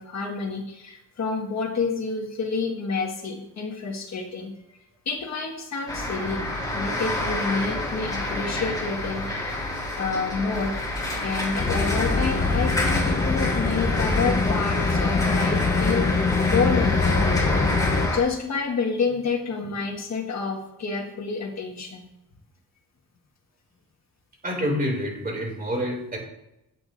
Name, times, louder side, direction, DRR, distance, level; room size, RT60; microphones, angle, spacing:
voice 1, 0.0-4.5 5.0-6.5 6.7-10.8 11.2-22.1, left 4 dB, 50° left, 1 dB, 1.8 m, -29 dB
sound 1, 5.9-18.2, left 2 dB, 10° left, 3.4 m, -28 dB
sound 2, 11.6-18.1, left 4 dB, 25° left, 0.9 m, -24 dB
voice 2, 24.4-26.2, equal, 25° right, 0 dB, 2.8 m, -27 dB
16.0 x 9.6 x 2.7 m, 0.85 s
wide cardioid pair, 165°, 35 cm